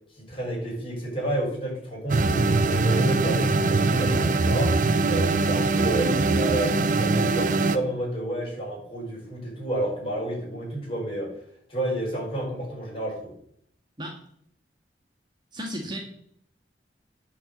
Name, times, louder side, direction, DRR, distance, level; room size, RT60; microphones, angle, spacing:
voice 1, 0.2-11.4 11.7-13.3, right 1 dB, 30° left, -3 dB, 4.6 m, -30 dB
sound 1, 2.1-7.8, right 3 dB, 50° right, 0.7 m, -22 dB
voice 2, 15.5-16.0, equal, 25° right, -1 dB, 1.8 m, -33 dB
10.0 x 4.5 x 7.6 m, 0.67 s
head